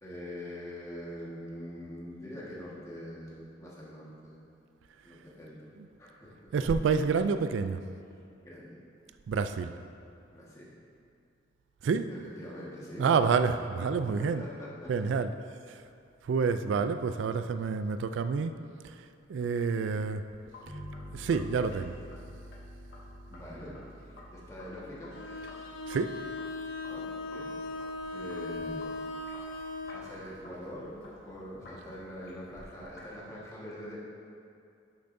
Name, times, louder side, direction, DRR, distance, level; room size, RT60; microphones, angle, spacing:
voice 1, 0.0-4.4 5.0-5.7 6.0-6.5 8.4-8.8 10.3-10.7 12.1-13.3 14.0-15.1 23.3-25.1 26.9-27.5 28.1-28.8 29.2-29.5 29.9-34.0, left 1 dB, 15° left, -6 dB, 1.5 m, -44 dB
voice 2, 6.5-7.8 9.3-9.7 11.8-12.1 13.0-14.4 14.9-15.3 16.3-18.5 19.3-20.2 21.1-21.9 25.9-26.2, right 5 dB, 75° right, 10 dB, 0.3 m, -28 dB
Sink (filling or washing), 20.3-33.2, left 1 dB, 60° left, 1.4 m, -54 dB
sound 1, 20.7-29.9, equal, 45° right, 2.0 m, -50 dB
Bowed string instrument, 25.1-30.1, left 2 dB, 90° left, 0.6 m, -38 dB
11.0 x 7.0 x 2.6 m, 2.4 s
head